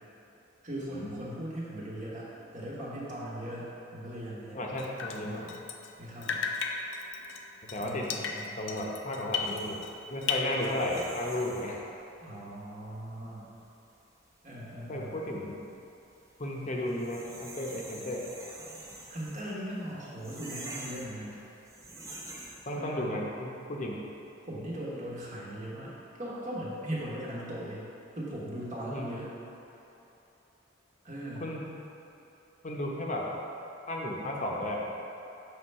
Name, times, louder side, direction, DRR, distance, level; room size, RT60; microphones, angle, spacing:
voice 1, 0.6-4.8 5.2-5.6 6.0-6.5 7.8-8.6 12.2-13.5 14.4-15.1 19.1-21.5 22.7-23.2 24.4-27.9 28.1-29.3 31.0-31.5, right 1 dB, 40° right, -6 dB, 1.3 m, -39 dB
voice 2, 4.5-5.5 7.7-8.1 8.6-9.8 10.1-11.8 14.9-15.6 16.4-18.2 22.7-24.0 28.9-29.1 31.4-31.6 32.6-33.2 33.9-34.8, left 1 dB, 40° left, -2 dB, 0.8 m, -34 dB
Drip, 4.8-6.0 6.2-10.0 10.2-11.2, left 6 dB, 65° left, 0.4 m, -35 dB
sound 1, 9.4-22.8, right 2 dB, 15° right, 0.7 m, -48 dB
6.3 x 3.4 x 5.5 m, 3.0 s
head